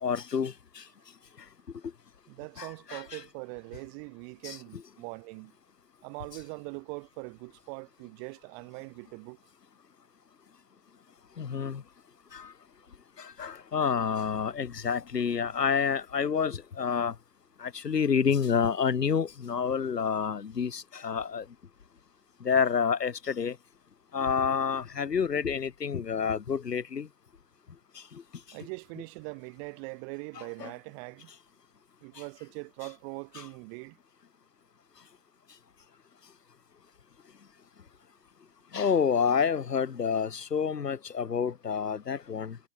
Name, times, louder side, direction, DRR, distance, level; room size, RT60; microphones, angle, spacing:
voice 1, 0.0-0.8 2.6-3.2 4.4-4.6 11.4-11.8 12.3-12.5 13.2-17.1 17.6-21.4 22.4-23.6 24.1-27.1 30.6-30.7 38.7-42.6, left 6 dB, 85° left, 2.1 m, -28 dB
voice 2, 2.3-5.5 6.0-9.4 28.5-31.3 32.0-34.0, right 40 dB or more, 40° right, 3.4 m, -42 dB
hypercardioid pair, 120°, 47 cm